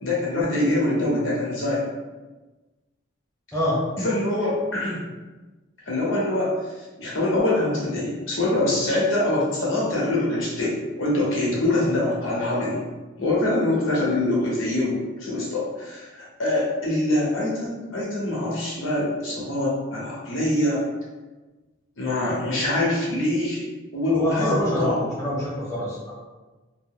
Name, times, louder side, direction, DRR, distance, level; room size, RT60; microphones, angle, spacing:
voice 1, 0.0-1.9 4.0-5.0 5.9-12.8 13.2-20.9 22.0-23.7 23.9-25.1, left 1 dB, 85° left, -5 dB, 1.0 m, -24 dB
voice 2, 24.1-26.1, equal, 15° left, -8 dB, 0.9 m, -26 dB
2.5 x 2.1 x 3.6 m, 1.2 s
head